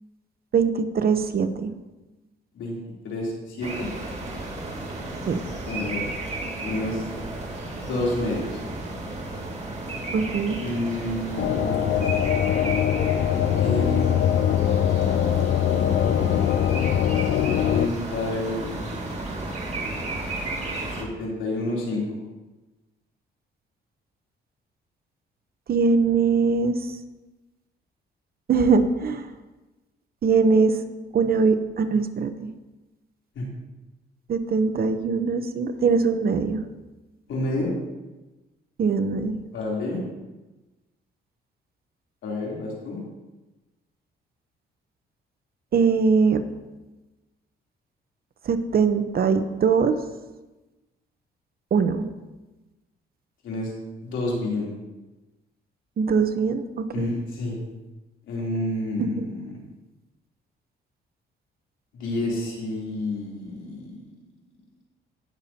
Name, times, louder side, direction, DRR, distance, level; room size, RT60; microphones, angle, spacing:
voice 1, 0.5-1.7 5.3-5.4 10.1-10.6 25.7-27.0 28.5-29.3 30.2-30.8 31.1-32.3 34.3-36.6 38.8-39.4 45.7-46.4 48.4-49.9 51.7-52.1 56.0-57.2 59.0-59.3, right 5 dB, 50° right, 9 dB, 0.9 m, -22 dB
voice 2, 3.0-3.9 5.6-6.0 6.6-7.0 7.8-8.6 10.6-12.1 13.6-14.1 17.4-19.2 21.0-22.0 33.3-33.4 37.3-37.7 39.5-40.0 42.2-43.0 53.4-53.7 54.0-54.7 56.9-57.6 58.3-59.6 61.9-64.0, left 2 dB, 75° left, -3 dB, 3.3 m, -29 dB
sound 1, 3.6-21.0, right 2 dB, 35° right, 2.3 m, -33 dB
sound 2, 11.4-17.9, left 10 dB, 60° left, 0.5 m, -22 dB
18.0 x 6.9 x 2.9 m, 1.1 s
cardioid pair, 90°, 20 cm